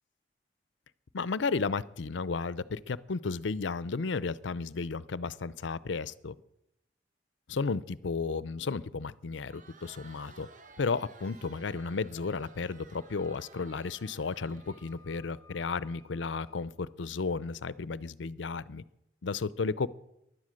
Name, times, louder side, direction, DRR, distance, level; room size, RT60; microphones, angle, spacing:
voice 1, 1.1-6.3 7.5-10.5 10.8-18.8 19.2-19.9, left 4 dB, 80° left, 18 dB, 0.6 m, -33 dB
Crowd, 9.3-15.3, right 4 dB, 45° right, 1.0 m, -55 dB
Wind instrument woodwind instrument, 12.3-16.6, left 5 dB, 10° left, 2.4 m, -61 dB
16.0 x 11.5 x 6.4 m, 0.85 s
head